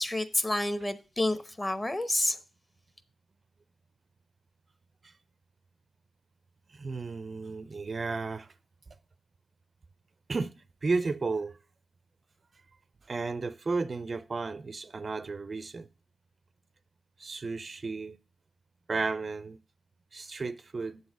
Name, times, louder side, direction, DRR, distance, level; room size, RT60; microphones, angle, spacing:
voice 1, 0.0-2.4, left 1 dB, 20° left, 0.8 m, -29 dB
voice 2, 6.7-8.5 10.3-10.5 10.8-11.6 13.1-15.9 17.2-18.2 18.9-19.6 20.1-21.0, right 4 dB, 45° right, 0.4 m, -33 dB
7.3 x 4.0 x 6.1 m
cardioid pair, 65°, 0 cm